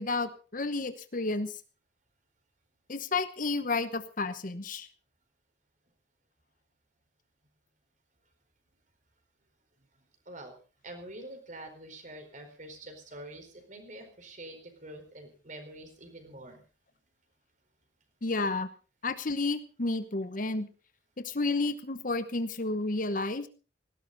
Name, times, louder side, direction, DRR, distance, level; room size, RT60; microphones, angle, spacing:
voice 1, 0.0-1.6 2.9-4.9 18.2-18.7 19.0-20.7 21.2-23.5, left 3 dB, 45° left, 12 dB, 1.0 m, -31 dB
voice 2, 10.8-16.6, right 1 dB, 40° right, 6 dB, 4.4 m, -46 dB
18.5 x 16.5 x 4.0 m, 0.34 s
head